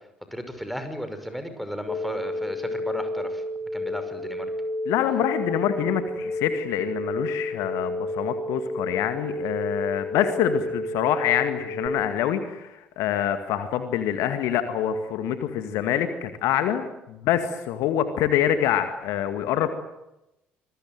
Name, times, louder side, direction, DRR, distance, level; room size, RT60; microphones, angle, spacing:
voice 1, 0.3-3.4 3.7-4.5, equal, ahead, 8 dB, 5.8 m, -34 dB
sound 1, 1.9-11.9, left 1 dB, 35° left, 5.5 m, -31 dB
voice 2, 4.9-19.7, left 10 dB, 60° left, 9 dB, 2.1 m, -26 dB
26.5 x 21.0 x 9.3 m, 0.89 s
figure-of-eight pair, 50°, 6 cm